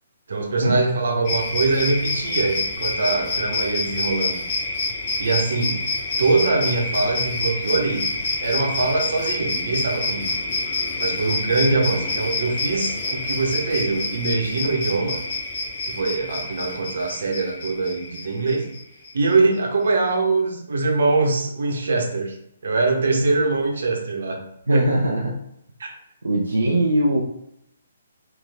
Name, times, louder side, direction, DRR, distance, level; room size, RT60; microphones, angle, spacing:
voice 1, 0.3-4.4 5.2-5.8 6.2-8.1 8.4-10.3 11.0-15.2 15.9-18.7 19.1-22.4 22.6-24.4 24.7-24.9 25.8-25.9, right 3 dB, 65° right, 2 dB, 1.1 m, -23 dB
sound 1, 1.2-19.3, left 3 dB, 45° left, 1.4 m, -27 dB
voice 2, 24.7-25.4 26.2-27.2, right 1 dB, 85° right, 0 dB, 0.6 m, -20 dB
3.5 x 3.4 x 3.6 m, 0.79 s
figure-of-eight pair, 135°, 0 cm